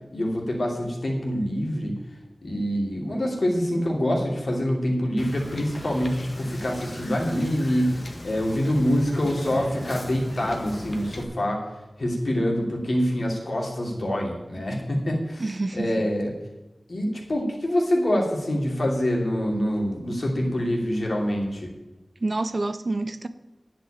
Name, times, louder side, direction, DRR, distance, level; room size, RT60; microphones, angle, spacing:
voice 1, 0.1-1.9 2.4-11.7 12.0-16.3 16.9-21.7, equal, 60° left, -1 dB, 2.9 m, -25 dB
Wind / Boat Water vehicle, 5.2-11.2, left 1 dB, 40° left, 1.6 m, -39 dB
voice 2, 15.4-15.9 22.2-23.3, right 2 dB, 45° right, 11 dB, 0.8 m, -27 dB
10.5 x 6.1 x 8.6 m, 1.0 s
wide cardioid pair, 75°, 0 cm